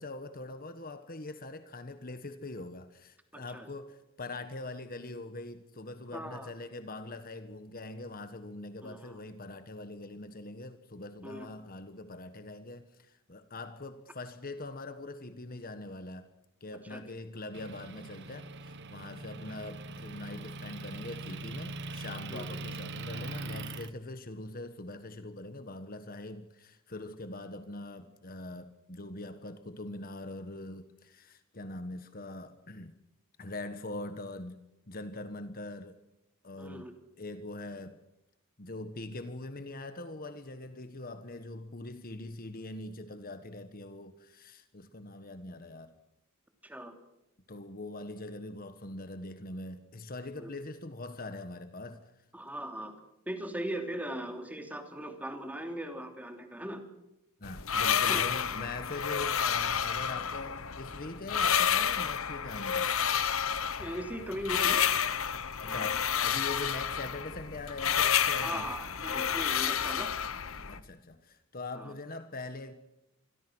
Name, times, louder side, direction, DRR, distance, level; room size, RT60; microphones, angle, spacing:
voice 1, 0.0-16.3 16.6-32.9 33.4-36.0 36.4-36.9 37.2-38.0 38.6-46.0 47.5-52.1 57.4-63.0 65.6-68.7 70.7-72.7, left 2 dB, 40° left, 1.4 m, -42 dB
voice 2, 3.3-3.7 6.1-6.5 8.8-9.1 11.2-11.5 16.9-17.0 22.3-22.5 36.6-36.9 46.6-46.9 50.4-50.5 52.3-52.9 53.3-56.8 58.1-58.3 63.8-64.8 65.6-65.8 68.4-70.1 71.7-71.9, right 1 dB, 5° right, 3.0 m, -39 dB
Motor vehicle (road) / Engine, 17.5-23.9, right 2 dB, 50° right, 1.1 m, -41 dB
sound 1, 57.4-70.8, left 8 dB, 65° left, 1.3 m, -30 dB
27.0 x 22.0 x 6.3 m
head